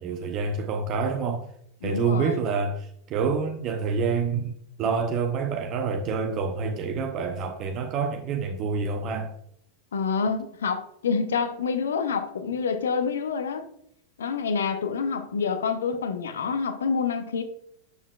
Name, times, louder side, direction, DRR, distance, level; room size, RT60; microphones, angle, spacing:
voice 1, 0.0-1.5 1.8-4.5 4.8-9.3, right 5 dB, 35° right, 0.7 m, -27 dB
voice 2, 1.8-2.5 9.9-13.7 14.2-17.4, left 5 dB, 65° left, 0.8 m, -27 dB
8.0 x 7.2 x 2.3 m
figure-of-eight pair, 90°, 0 cm